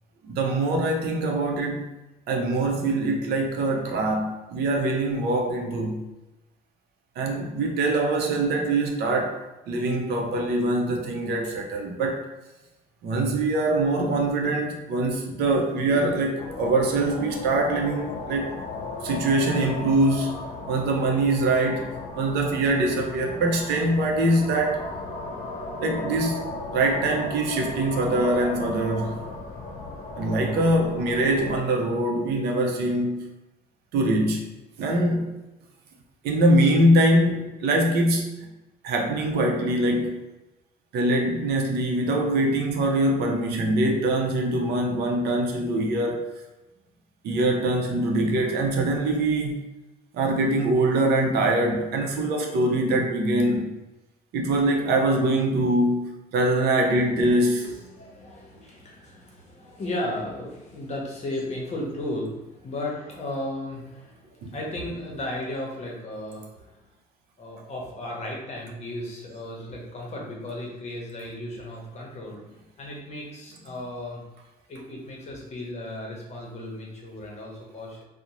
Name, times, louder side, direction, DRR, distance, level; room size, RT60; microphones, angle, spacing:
voice 1, 0.2-1.9 2.3-6.0 7.2-12.3 13.0-18.5 19.0-20.4 20.7-24.8 25.8-26.4 26.7-29.2 30.2-33.3 33.9-34.4 34.8-35.3 36.2-38.5 38.8-40.3 40.9-46.2 47.2-49.6 50.1-53.7 54.3-57.7 64.4-64.5, right 1 dB, 75° right, 1 dB, 0.5 m, -23 dB
sound 1, 16.4-31.6, left 2 dB, 75° left, 0.6 m, -36 dB
voice 2, 57.6-66.8 67.4-74.2 74.7-78.0, left 1 dB, 40° left, -2 dB, 0.8 m, -35 dB
2.5 x 2.0 x 2.9 m, 1.0 s
cardioid pair, 110°, 17 cm